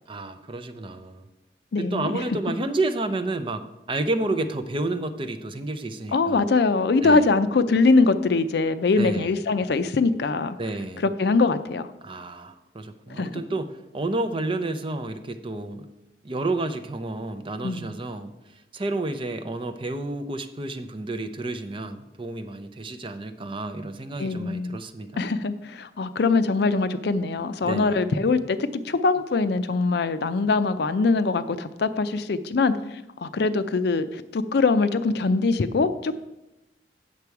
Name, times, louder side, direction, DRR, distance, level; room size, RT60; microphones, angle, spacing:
voice 1, 0.1-1.3 1.8-6.4 7.0-7.3 9.0-9.3 10.6-11.0 12.0-15.9 16.2-18.3 18.7-25.2 27.6-28.0, right 2 dB, 30° right, 8 dB, 0.6 m, -30 dB
voice 2, 1.7-2.2 6.1-10.6 11.2-11.9 13.2-13.4 17.6-17.9 24.2-24.8 25.2-32.7 33.2-36.2, left 3 dB, 65° left, 12 dB, 0.5 m, -22 dB
8.4 x 6.8 x 4.7 m, 0.96 s
head